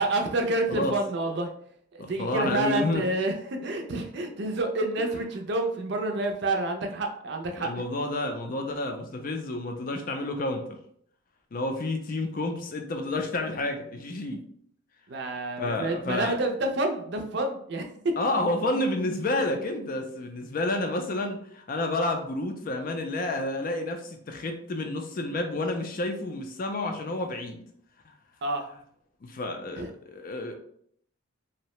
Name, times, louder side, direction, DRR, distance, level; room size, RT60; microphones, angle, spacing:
voice 1, 0.0-1.5 1.9-7.7 15.1-17.9 28.4-28.7 29.8-29.9, right 2 dB, 60° right, 4 dB, 0.4 m, -28 dB
voice 2, 2.0-3.0 5.0-5.1 7.6-10.8 11.5-14.4 15.6-16.4 18.2-27.6 29.2-30.5, left 2 dB, 45° left, 4 dB, 0.4 m, -30 dB
2.7 x 2.1 x 3.0 m, 0.65 s
head